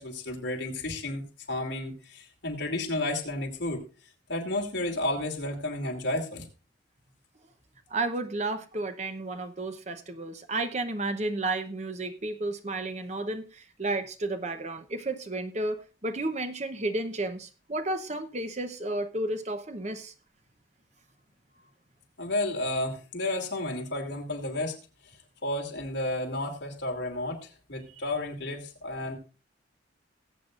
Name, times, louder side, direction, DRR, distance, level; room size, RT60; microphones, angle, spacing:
voice 1, 0.0-3.8 4.3-6.5 22.2-24.7 25.4-29.2, left 1 dB, 65° left, 2.7 m, -32 dB
voice 2, 7.9-20.1, right 2 dB, 35° right, 0.9 m, -32 dB
20.0 x 8.1 x 2.5 m
head